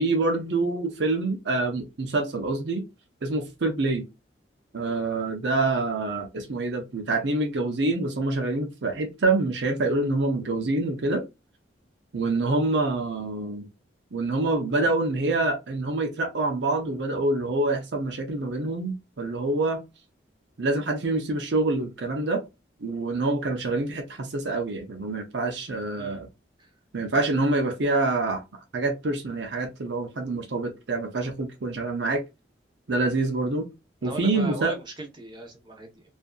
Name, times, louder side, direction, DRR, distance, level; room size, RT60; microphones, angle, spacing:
voice 1, 0.0-2.8 3.2-4.1 4.7-11.2 12.1-13.7 14.1-19.8 20.6-22.4 22.8-26.3 26.9-28.4 28.7-32.2 32.9-33.7 34.0-34.7, right 2 dB, 75° right, 0.6 m, -26 dB
voice 2, 34.0-36.0, right 2 dB, 25° right, 0.7 m, -38 dB
2.6 x 2.5 x 2.3 m
head